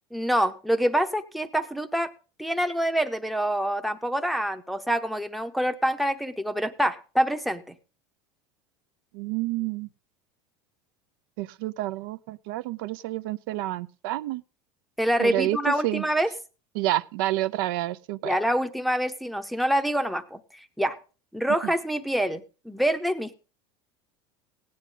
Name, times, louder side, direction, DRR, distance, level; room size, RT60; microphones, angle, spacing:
voice 1, 0.1-2.1 2.4-7.7 15.0-16.3 18.2-20.4 20.8-21.0 21.3-23.4, equal, ahead, 0.7 m, -26 dB
voice 2, 9.1-9.9 11.4-14.4 15.2-16.0 16.7-18.4, right 16 dB, 70° right, 0.5 m, -29 dB
17.0 x 9.7 x 3.8 m
supercardioid pair, 155°, 12 cm